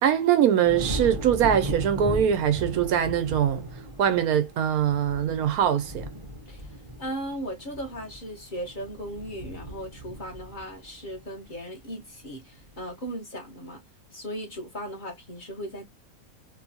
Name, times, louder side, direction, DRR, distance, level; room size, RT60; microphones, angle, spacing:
voice 1, 0.0-3.7 4.0-6.1, right 9 dB, 80° right, 1.1 m, -22 dB
sound 1, 0.6-11.9 12.3-12.8, equal, 30° right, 0.6 m, -37 dB
voice 2, 7.0-13.8 14.1-15.8, equal, 40° left, 0.9 m, -37 dB
3.0 x 2.3 x 2.5 m
omnidirectional pair, 1.5 m